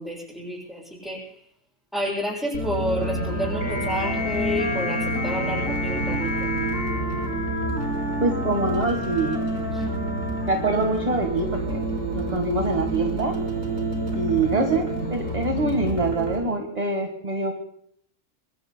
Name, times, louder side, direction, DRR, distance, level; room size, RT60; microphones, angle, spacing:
voice 1, 0.0-1.4 1.9-6.5 9.7-9.9, equal, ahead, -3 dB, 7.4 m, -30 dB
sound 1, 2.5-16.4, right 2 dB, 85° right, 4.6 m, -29 dB
Wind instrument woodwind instrument, 2.9-11.5, left 1 dB, 80° left, 3.1 m, -32 dB
sound 2, 3.6-8.1, left 4 dB, 35° left, 1.3 m, -33 dB
voice 2, 8.2-9.4 10.5-11.8 12.1-13.4 14.1-17.5, right 2 dB, 30° right, 3 dB, 1.6 m, -25 dB
25.0 x 24.5 x 2.2 m, 0.69 s
omnidirectional pair, 1.4 m